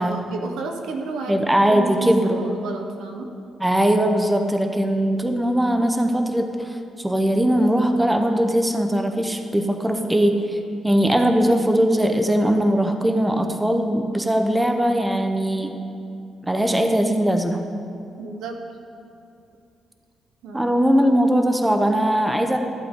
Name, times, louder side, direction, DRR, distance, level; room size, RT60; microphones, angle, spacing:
voice 1, 0.0-3.3 18.2-18.6 20.4-20.7, right 3 dB, 85° right, 3 dB, 0.9 m, -31 dB
voice 2, 1.3-2.4 3.6-10.6 10.8-15.7 16.4-17.6 20.5-22.6, equal, 10° right, 5 dB, 0.8 m, -20 dB
14.5 x 8.1 x 3.7 m, 2.6 s
cardioid pair, 85°, 0 cm